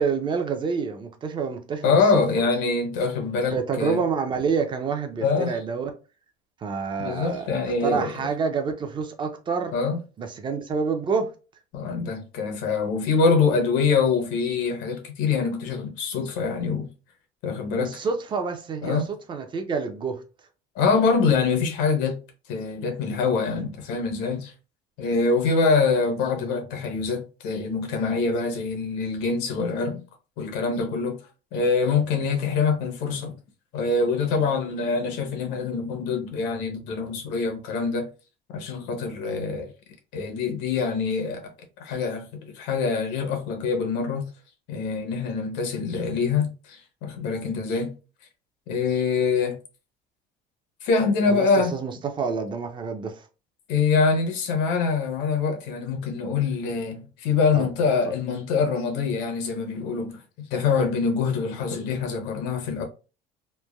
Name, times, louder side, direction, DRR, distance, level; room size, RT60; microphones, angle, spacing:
voice 1, 0.0-2.0 3.5-5.9 6.6-7.5 7.8-9.8 10.2-11.3 17.8-19.0 19.3-20.2 39.2-39.4 51.3-53.3 57.5-57.7, right 5 dB, 25° right, 0.5 m, -28 dB
voice 2, 1.8-4.0 5.2-5.5 7.0-8.1 9.7-10.0 11.7-16.9 17.4-18.0 18.8-19.1 20.8-22.2 22.5-24.5 25.0-30.0 30.4-31.2 31.5-33.4 33.7-38.1 38.5-39.7 40.1-41.4 41.8-44.3 44.7-47.9 48.7-49.6 50.8-51.7 53.7-60.2 60.5-62.9, left 4 dB, 80° left, 0.8 m, -24 dB
3.1 x 2.2 x 2.2 m
cardioid pair, 130°, 18 cm